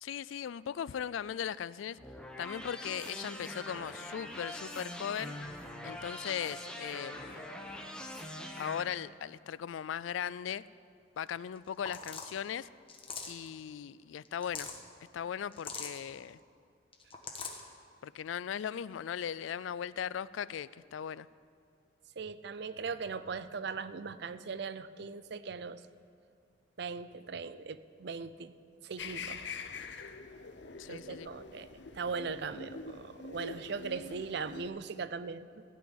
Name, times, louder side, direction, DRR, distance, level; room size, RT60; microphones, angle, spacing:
voice 1, 0.0-2.0 2.4-5.3 5.8-7.5 8.6-10.6 11.2-12.7 13.3-14.7 15.1-16.4 18.0-21.3 30.8-31.3, left 8 dB, 90° left, 19 dB, 0.3 m, -38 dB
sound 1, 2.0-8.8, left 1 dB, 5° left, 0.9 m, -43 dB
sound 2, 11.9-12.4 12.9-13.5 14.3-14.8 15.5-16.0 16.9-17.6, left 5 dB, 30° left, 1.3 m, -41 dB
voice 2, 22.2-25.8 26.8-28.6 28.8-29.4 30.9-31.7 31.9-35.6, right 5 dB, 60° right, 13 dB, 0.5 m, -39 dB
sound 3, 29.0-34.7, left 4 dB, 65° left, 0.7 m, -45 dB
16.0 x 6.3 x 9.7 m, 2.3 s
head